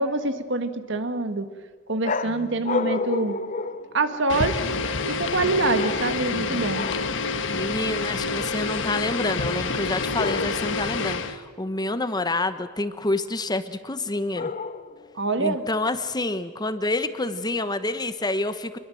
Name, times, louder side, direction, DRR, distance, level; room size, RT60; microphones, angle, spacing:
voice 1, 0.0-1.5 1.9-3.4 3.9-4.6 5.0-6.8 15.2-15.6, right 3 dB, 65° right, 9 dB, 1.8 m, -25 dB
sound 1, 2.0-4.5 5.7-6.4 6.7-7.2 10.1-10.8 14.3-15.1, left 4 dB, 40° left, 0.7 m, -30 dB
voice 2, 2.2-2.6 6.3-6.6 7.5-14.5 15.4-18.8, left 2 dB, 20° left, 11 dB, 1.1 m, -28 dB
sound 2, 4.3-11.4, left 4 dB, 65° left, 1.5 m, -28 dB
26.5 x 21.5 x 7.8 m, 1.5 s
head